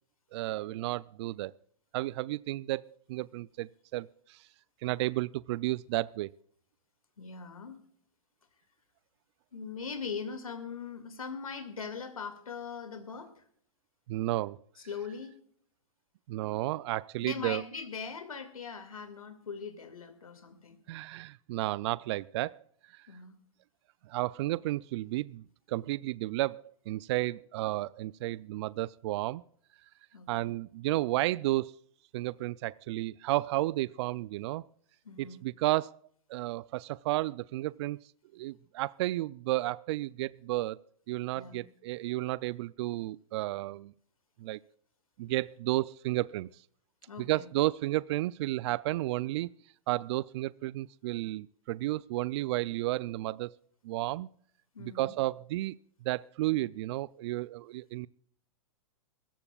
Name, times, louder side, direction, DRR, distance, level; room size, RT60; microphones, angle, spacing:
voice 1, 0.3-1.5 1.9-2.8 3.1-4.5 4.8-6.3 14.1-14.6 16.3-17.6 20.9-22.6 22.9-23.1 24.1-29.4 30.3-31.7 32.1-34.6 35.2-36.0 36.3-38.0 38.3-40.8 41.1-43.9 44.4-44.6 45.2-46.6 47.2-49.5 49.9-53.6 53.8-54.3 54.8-55.8 56.0-58.1, right 17 dB, 50° right, 19 dB, 0.4 m, -32 dB
voice 2, 7.2-7.8 9.5-13.4 14.9-15.3 17.2-20.8 23.1-23.4 30.1-30.5 35.1-35.4 41.3-41.6 47.1-47.4 54.7-55.1, left 5 dB, 90° left, 7 dB, 2.2 m, -41 dB
24.0 x 14.0 x 2.4 m, 0.63 s
hypercardioid pair, 115°, 18 cm